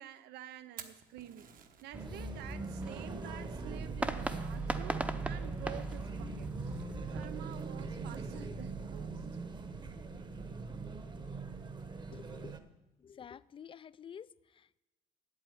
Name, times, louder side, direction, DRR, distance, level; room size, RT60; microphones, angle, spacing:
voice 1, 0.0-1.5 1.8-9.2, right 12 dB, 80° right, 13 dB, 0.8 m, -49 dB
Fire, 0.5-12.0, right 7 dB, 55° right, 1.3 m, -60 dB
sound 1, 1.9-7.3, right 1 dB, 10° right, 0.7 m, -41 dB
sound 2, 1.9-12.6, right 4 dB, 25° right, 1.1 m, -41 dB
voice 2, 12.1-12.6 13.0-14.8, left 8 dB, 30° left, 19 dB, 0.4 m, -50 dB
8.4 x 8.3 x 9.3 m, 1.0 s
cardioid pair, 110°, 17 cm